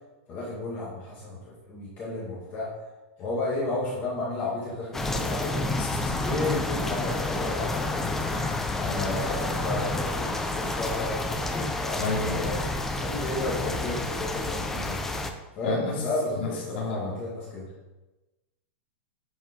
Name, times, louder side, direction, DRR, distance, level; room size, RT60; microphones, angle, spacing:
voice 1, 0.3-2.7 3.2-5.6 6.2-8.3 8.8-12.7 13.0-17.7, left 2 dB, 20° left, -6 dB, 1.8 m, -33 dB
sound 1, 4.9-15.3, left 2 dB, 5° left, 0.4 m, -29 dB
voice 2, 5.8-6.3 12.0-12.6 15.6-16.0 16.3-17.1, left 3 dB, 50° left, -3 dB, 3.1 m, -31 dB
10.5 x 5.1 x 5.0 m, 1.1 s
supercardioid pair, 175°, 7 cm